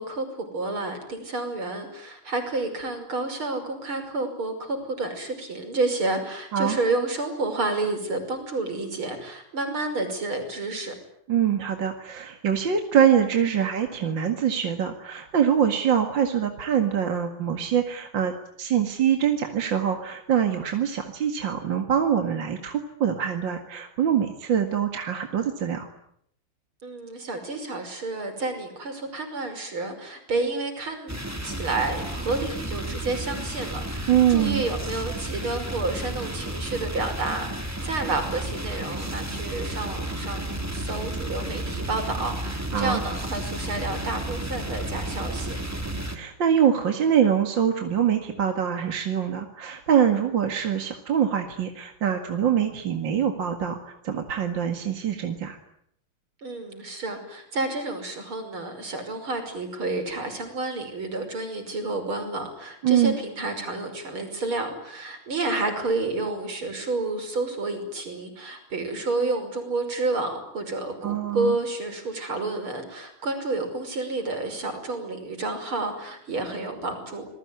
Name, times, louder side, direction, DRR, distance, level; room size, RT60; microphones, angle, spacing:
voice 1, 0.0-10.9 26.8-31.2 31.4-45.6 56.4-77.2, right 3 dB, 85° right, 6 dB, 6.4 m, -30 dB
voice 2, 11.3-18.3 18.6-25.9 34.1-34.6 42.7-43.0 46.1-55.6 62.8-63.2 71.0-71.6, right 8 dB, 60° right, 5 dB, 2.7 m, -24 dB
sound 1, 31.1-46.2, right 1 dB, 5° right, 2.6 m, -32 dB
27.5 x 21.0 x 9.8 m, 0.73 s
omnidirectional pair, 2.3 m